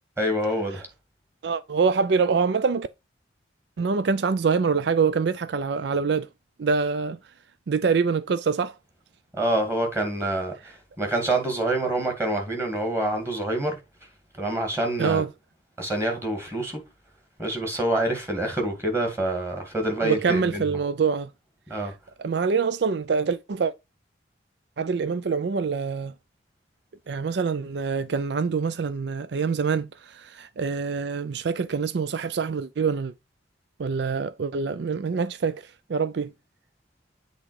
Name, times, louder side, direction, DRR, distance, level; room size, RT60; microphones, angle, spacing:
voice 1, 0.2-0.9 9.3-13.8 14.4-15.2 15.8-16.8 17.4-20.6 21.7-21.9, right 1 dB, 15° right, 2.1 m, -26 dB
voice 2, 1.4-2.9 3.8-6.3 6.6-7.2 7.7-8.7 15.0-15.3 19.9-21.3 22.2-23.7 24.8-26.1 27.1-33.1 33.8-35.6 35.9-36.3, right 5 dB, 60° right, 0.4 m, -25 dB
8.1 x 3.7 x 4.8 m
head